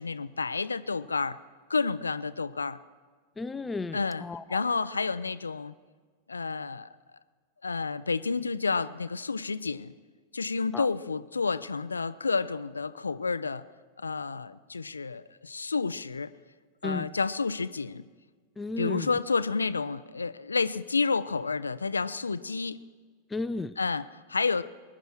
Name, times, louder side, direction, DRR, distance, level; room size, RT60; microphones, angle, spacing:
voice 1, 0.0-1.4 1.7-2.8 3.9-4.2 4.5-5.7 6.3-6.9 7.6-9.9 10.3-13.6 14.0-16.3 16.8-18.0 18.8-22.8 23.8-24.6, left 4 dB, 75° left, 15 dB, 0.4 m, -30 dB
voice 2, 3.4-4.6 10.7-10.9 16.8-17.1 18.6-19.1 23.3-23.7, left 3 dB, 10° left, 13 dB, 0.4 m, -34 dB
21.0 x 10.0 x 6.0 m, 1.5 s
figure-of-eight pair, 90°, 0 cm